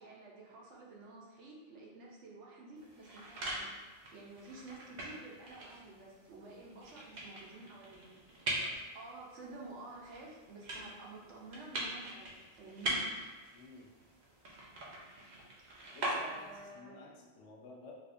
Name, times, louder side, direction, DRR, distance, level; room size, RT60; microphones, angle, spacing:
voice 1, 0.0-8.1 8.9-13.0 15.7-15.9 16.3-17.0, right 2 dB, 75° right, -3 dB, 1.0 m, -51 dB
sound 1, 2.8-16.7, right 1 dB, 50° right, 0.6 m, -42 dB
voice 2, 13.5-13.9 15.9-17.9, left 3 dB, 80° left, -2 dB, 0.9 m, -53 dB
3.4 x 2.4 x 2.5 m, 1.2 s
omnidirectional pair, 1.2 m